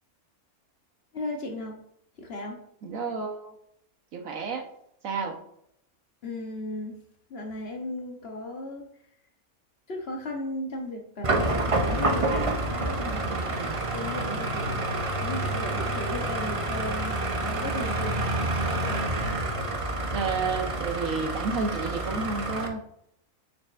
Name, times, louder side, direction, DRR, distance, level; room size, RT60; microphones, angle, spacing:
voice 1, 1.1-1.8 2.2-2.6 6.2-7.0 7.3-8.9 9.9-12.3 12.7-14.8 15.2-18.5, left 1 dB, 50° left, 3 dB, 1.0 m, -36 dB
voice 2, 2.8-3.5 4.1-4.7 5.0-5.4 13.3-13.7 20.1-22.8, right 4 dB, 65° right, 3 dB, 1.3 m, -31 dB
sound 1, 11.2-22.7, right 2 dB, 35° right, 0.5 m, -28 dB
6.5 x 6.4 x 2.5 m, 0.73 s
omnidirectional pair, 1.5 m